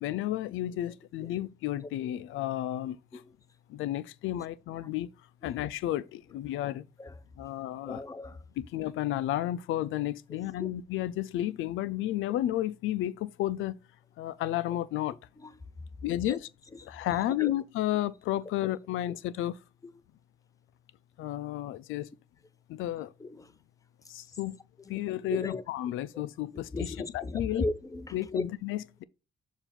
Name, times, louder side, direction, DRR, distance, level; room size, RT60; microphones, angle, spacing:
voice 1, 0.0-3.2 3.7-5.1 5.4-6.8 7.4-8.0 8.6-13.8 14.2-15.2 16.0-16.5 16.8-19.6 21.2-22.1 22.7-23.1 24.1-24.6 24.9-27.6 28.1-29.0, left 13 dB, 85° left, 0.5 m, -32 dB
voice 2, 7.9-8.4 10.6-10.7 16.3-16.4 17.4-17.5 23.2-23.5 25.3-25.6 26.7-28.4, left 3 dB, 15° left, 0.5 m, -34 dB
6.9 x 2.7 x 5.7 m
cardioid pair, 90°, 20 cm